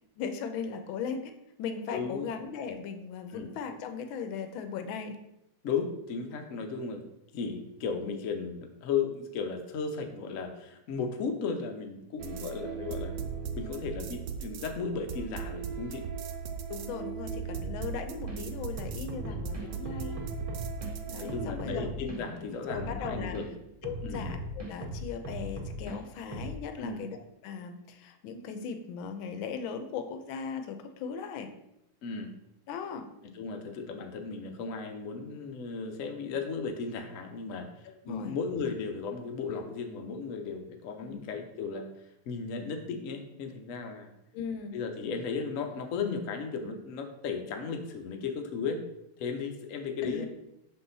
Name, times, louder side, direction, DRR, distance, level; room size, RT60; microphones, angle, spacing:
voice 1, 0.2-1.3 1.6-5.2 16.7-20.2 21.1-21.9 22.7-23.4 23.8-27.2 27.4-31.5 32.7-33.1 37.8-38.3 41.0-41.2 44.3-44.8 50.0-50.3, left 6 dB, 80° left, 7 dB, 1.4 m, -38 dB
voice 2, 1.9-2.3 3.3-3.5 5.6-7.0 7.3-13.2 13.5-16.0 19.3-19.5 21.2-23.6 24.0-24.3 26.8-27.1 32.0-32.3 33.3-41.9 42.3-44.1 44.7-48.8 49.2-50.3, left 5 dB, 65° left, 4 dB, 0.8 m, -35 dB
sound 1, 12.2-21.5, right 6 dB, 70° right, 1.2 m, -38 dB
sound 2, 18.2-18.4 18.8-20.9 21.3-23.4 23.8-26.0 26.3-26.5, right 1 dB, 25° right, 0.7 m, -38 dB
6.6 x 3.8 x 4.0 m, 0.84 s
omnidirectional pair, 2.3 m